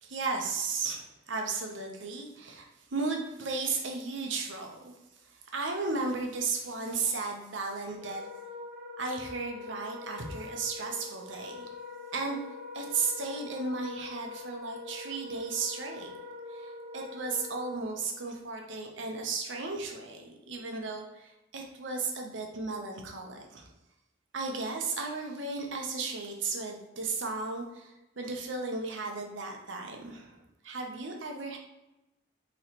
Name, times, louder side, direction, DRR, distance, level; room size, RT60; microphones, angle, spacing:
voice 1, 0.0-4.9 5.5-8.2 9.0-11.7 12.1-12.4 12.7-16.2 16.5-23.7 24.3-30.4 30.6-31.6, right 4 dB, 70° right, 2 dB, 0.7 m, -35 dB
Wind instrument woodwind instrument, 7.9-18.0, left 3 dB, 10° right, 1.1 m, -44 dB
4.1 x 3.1 x 2.9 m, 0.95 s
head